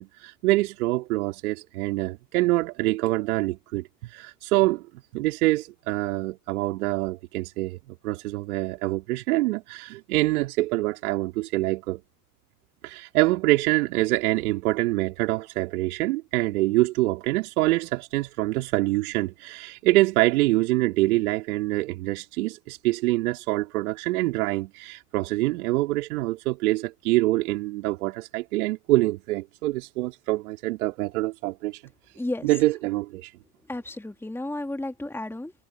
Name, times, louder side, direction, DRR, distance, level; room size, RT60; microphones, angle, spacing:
voice 1, 0.0-4.8 5.1-7.8 8.0-12.0 12.8-31.8 32.4-33.3, right 19 dB, 60° right, 3.7 m, -25 dB
voice 2, 33.7-35.5, left 1 dB, 5° left, 2.9 m, -32 dB
figure-of-eight pair, 80°, 48 cm